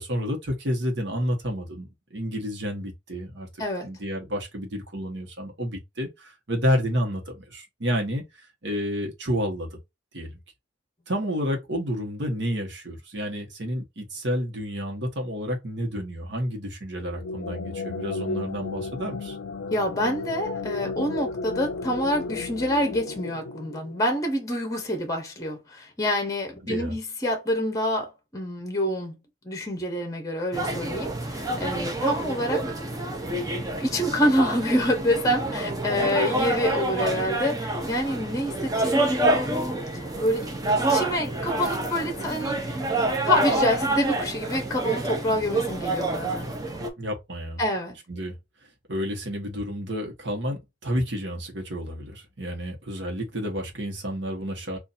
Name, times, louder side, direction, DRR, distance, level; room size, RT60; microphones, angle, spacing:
voice 1, 0.0-3.5 3.8-8.2 8.6-9.8 10.1-10.3 11.1-19.4 26.6-26.9 47.0-47.6 48.1-48.3 48.9-54.8, equal, 65° right, 1.1 m, -30 dB
sound 1, 17.0-24.4, left 3 dB, 75° left, 0.3 m, -34 dB
voice 2, 19.7-29.1 29.4-32.7 33.8-39.8 40.1-42.8 43.3-46.5 47.6-48.0, equal, 20° left, 0.8 m, -27 dB
sound 2, 30.5-46.9, right 2 dB, 20° right, 0.6 m, -27 dB
2.6 x 2.5 x 4.1 m
head